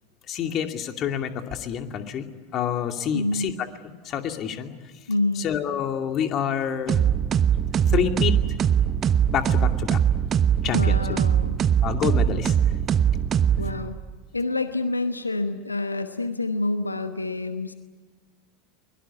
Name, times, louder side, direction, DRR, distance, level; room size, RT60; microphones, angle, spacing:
voice 1, 0.3-2.3 2.5-3.7 4.0-4.7 5.4-7.0 7.9-8.3 9.3-10.0 10.6-11.0 11.8-12.5, left 8 dB, 40° left, 6 dB, 2.5 m, -27 dB
voice 2, 3.1-3.5 5.1-5.4 10.7-11.6 13.6-14.0 14.3-17.7, left 2 dB, 90° left, 9 dB, 1.0 m, -27 dB
sound 1, 6.9-14.0, right 9 dB, 35° right, 1.0 m, -22 dB
23.5 x 22.5 x 9.5 m, 1.4 s
figure-of-eight pair, 80°, 0 cm